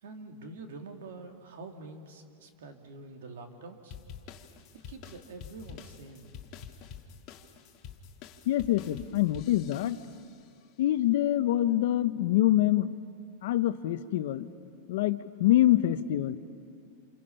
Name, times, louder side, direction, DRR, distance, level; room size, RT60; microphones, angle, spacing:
voice 1, 0.0-4.0 4.7-6.4, right 3 dB, 80° right, 4 dB, 2.4 m, -46 dB
sound 1, 3.9-10.4, left 7 dB, 40° left, 1.6 m, -48 dB
voice 2, 8.5-10.0 10.8-13.0 13.4-14.5 14.9-16.3, left 14 dB, 65° left, 12 dB, 0.9 m, -25 dB
28.5 x 28.0 x 5.7 m, 2.4 s
supercardioid pair, 155°, 0 cm